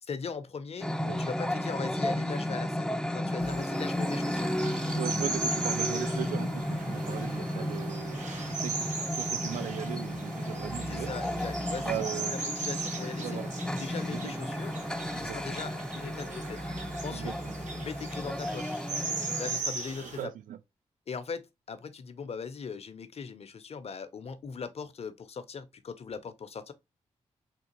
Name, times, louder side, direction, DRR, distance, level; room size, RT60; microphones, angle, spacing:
voice 1, 0.0-0.9 1.2-4.5 10.9-12.0 12.3-13.4 13.8-14.7 15.2-16.6 17.0-17.3 17.8-18.8 19.4-20.3 21.1-26.7, left 5 dB, 50° left, 0.6 m, -40 dB
sound 1, 0.8-19.6, left 1 dB, 5° left, 0.4 m, -33 dB
sound 2, 3.4-20.2, right 3 dB, 65° right, 1.0 m, -38 dB
voice 2, 5.0-8.9 9.1-11.1 11.7-12.4 13.2-13.5 14.1-14.3 15.1-15.4 17.1-17.5 20.2-20.6, right 11 dB, 85° right, 0.4 m, -38 dB
sound 3, 5.4-15.7, right 2 dB, 35° right, 0.7 m, -49 dB
3.6 x 2.4 x 2.9 m
supercardioid pair, 50°, 13 cm